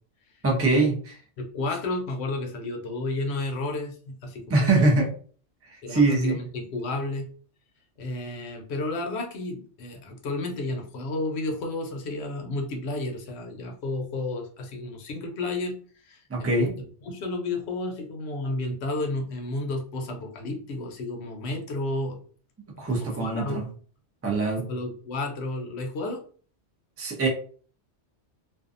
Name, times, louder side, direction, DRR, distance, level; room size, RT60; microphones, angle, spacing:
voice 1, 0.4-0.9 4.5-5.1 5.7-6.4 16.3-16.7 22.8-23.7 24.2-24.7 27.0-27.3, right 3 dB, 25° right, 0 dB, 0.3 m, -23 dB
voice 2, 1.4-4.9 5.8-7.3 8.0-15.7 16.0-16.7 17.0-22.2 22.9-23.7 24.7-26.2, left 2 dB, 70° left, 3 dB, 0.9 m, -32 dB
2.6 x 2.2 x 2.4 m, 0.43 s
omnidirectional pair, 1.2 m